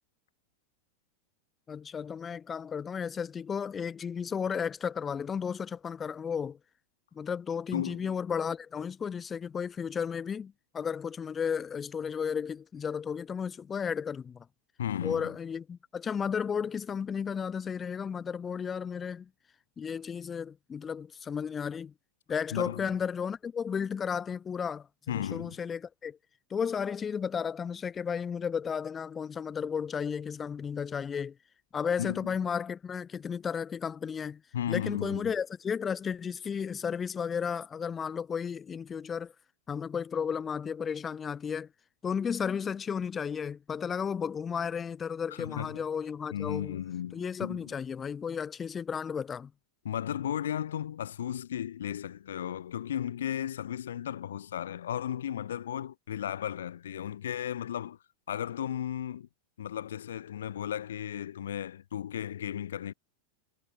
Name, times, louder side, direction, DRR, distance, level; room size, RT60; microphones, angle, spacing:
voice 1, 1.7-6.6 7.2-14.5 15.0-19.3 19.8-21.9 22.3-26.2 26.5-31.4 31.7-34.4 34.7-39.3 39.7-41.7 42.0-46.8 47.1-49.5, left 7 dB, 20° left, 3.5 m, -33 dB
voice 2, 7.7-8.1 14.8-15.3 22.5-22.9 25.1-25.5 32.0-32.3 34.5-35.3 45.3-45.8 46.3-47.7 49.8-58.0 58.3-59.3 59.6-62.9, left 10 dB, 65° left, 1.9 m, -35 dB
figure-of-eight pair, 90°, 0 cm